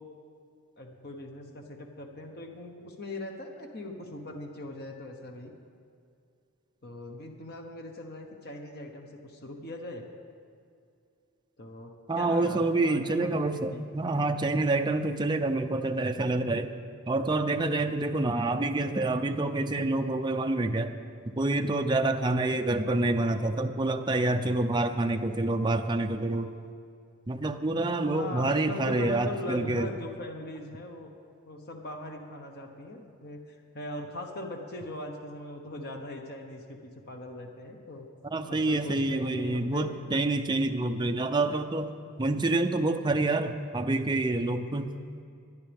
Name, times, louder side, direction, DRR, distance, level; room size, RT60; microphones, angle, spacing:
voice 1, 0.8-5.5 6.8-10.0 11.6-13.8 14.1-14.2 28.0-31.1 31.5-33.4 33.7-38.1 38.5-40.7, left 1 dB, 45° left, 2 dB, 1.1 m, -40 dB
voice 2, 12.1-16.7 17.1-21.0 21.3-26.5 27.3-29.9 38.3-41.9 42.2-44.9, right 2 dB, 20° right, 5 dB, 0.5 m, -27 dB
23.0 x 9.9 x 3.5 m, 2.4 s
head